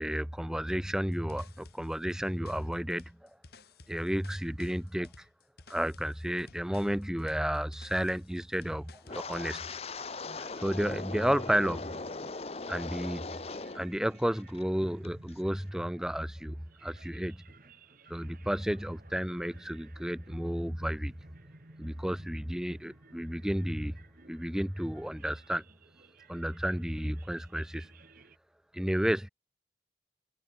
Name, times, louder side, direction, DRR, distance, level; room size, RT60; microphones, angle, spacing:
voice 1, 0.0-3.3 3.9-5.2 5.7-9.6 10.4-11.9 12.7-13.4 13.7-16.6 16.8-17.4 18.1-21.1 21.8-24.0 24.3-25.6 26.3-27.9 28.7-29.3, equal, 5° right, 0.5 m, -32 dB
sound 1, 0.9-9.5, left 3 dB, 60° left, 1.7 m, -56 dB
Wind, 9.1-13.9 14.2-14.6 15.0-15.3, left 3 dB, 35° left, 0.9 m, -39 dB
sound 2, 9.6-28.4, right 2 dB, 50° right, 2.2 m, -57 dB
open air
head